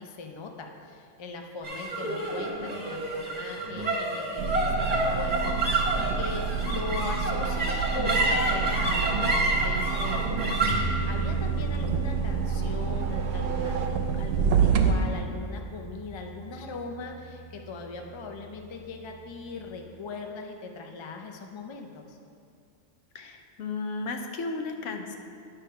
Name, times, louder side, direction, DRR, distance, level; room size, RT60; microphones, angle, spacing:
voice 1, 0.0-22.2, left 4 dB, 50° left, 3 dB, 0.3 m, -40 dB
sound 1, 1.6-18.2, right 2 dB, 35° right, 1.2 m, -30 dB
sound 2, 4.4-14.9, right 6 dB, 90° right, 1.0 m, -28 dB
sound 3, 11.2-14.5, right 6 dB, 60° right, 0.8 m, -39 dB
voice 2, 23.1-25.2, left 3 dB, 75° left, 5 dB, 1.0 m, -34 dB
10.0 x 3.6 x 5.6 m, 2.4 s
omnidirectional pair, 1.3 m